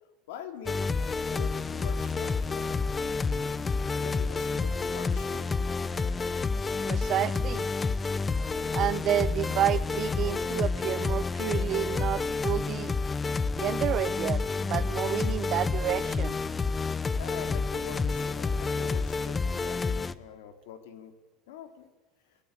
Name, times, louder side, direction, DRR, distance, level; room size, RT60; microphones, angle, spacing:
voice 1, 0.3-0.9 1.3-3.5 4.0-5.5 17.1-21.1 21.5-21.9, left 9 dB, 90° left, 8 dB, 2.6 m, -44 dB
sound 1, 0.6-20.1, left 4 dB, 15° left, 0.7 m, -29 dB
sound 2, 1.9-7.3, right 11 dB, 60° right, 2.9 m, -52 dB
voice 2, 6.9-7.7 8.7-12.9 13.6-16.4, right 12 dB, 40° right, 17 dB, 0.8 m, -30 dB
19.5 x 17.0 x 8.8 m, 1.1 s
supercardioid pair, 140°, 0 cm